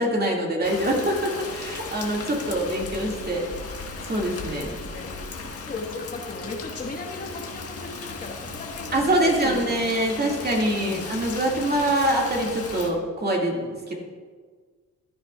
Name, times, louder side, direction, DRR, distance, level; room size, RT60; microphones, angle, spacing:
voice 1, 0.0-3.4 4.0-4.7 8.9-13.9, right 1 dB, 30° right, -1 dB, 2.2 m, -24 dB
Rain, 0.6-12.9, left 4 dB, 50° left, 1.5 m, -36 dB
voice 2, 4.6-5.1 5.7-9.8 10.2-11.1, left 3 dB, 30° left, 1 dB, 1.5 m, -37 dB
15.0 x 9.9 x 2.4 m, 1.5 s
cardioid pair, 90°, 30 cm